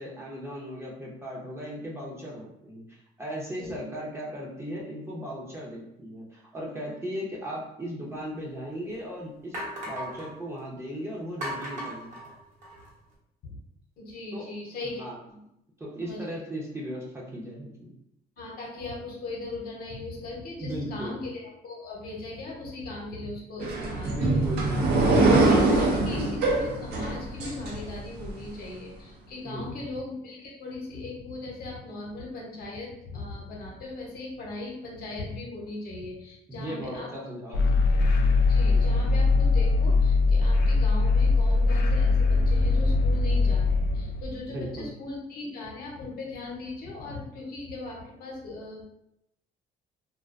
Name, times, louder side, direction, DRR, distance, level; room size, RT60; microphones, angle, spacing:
voice 1, 0.0-9.6 9.9-12.2 14.3-14.5 15.0-15.2 15.8-17.9 20.6-21.3 24.0-25.3 29.4-29.7 36.5-37.9 44.5-44.9, equal, 15° right, -4 dB, 0.6 m, -37 dB
voice 2, 3.5-3.9 13.4-13.6 14.0-15.4 16.0-16.4 18.4-24.4 25.0-25.1 25.3-37.1 38.5-48.8, left 2 dB, 60° left, -2 dB, 0.8 m, -39 dB
sound 1, 8.2-8.3 8.9-9.0 9.5-10.3 11.4-12.9, equal, 50° right, 0.9 m, -36 dB
sound 2, 23.6-28.3, right 2 dB, 70° right, 0.6 m, -23 dB
sound 3, 37.5-44.2, left 3 dB, 75° left, 0.4 m, -21 dB
2.4 x 2.2 x 2.4 m, 0.81 s
cardioid pair, 110°, 17 cm